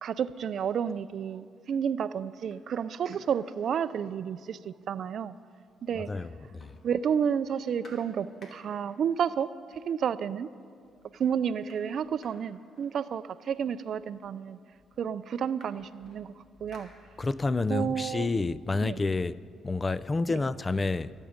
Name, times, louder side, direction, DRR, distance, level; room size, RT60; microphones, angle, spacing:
voice 1, 0.0-5.4 5.8-6.1 6.8-9.5 9.8-10.5 11.1-14.6 15.0-16.9 17.7-18.3 18.8-19.0 20.3-20.4, right 8 dB, 60° right, 0.4 m, -31 dB
sound 1, 1.2-1.4 1.9-2.0 2.4-4.5 4.8-4.9 5.1-6.0 6.2-9.0 9.9-10.0 10.4-10.9 11.1-13.6 14.4-14.5 14.8-17.6 18.0-19.7, left 1 dB, 60° left, 2.7 m, -59 dB
voice 2, 5.9-6.8 17.2-19.4 19.6-21.1, left 3 dB, 25° left, 0.4 m, -29 dB
23.5 x 9.0 x 5.1 m
cardioid pair, 90°, 0 cm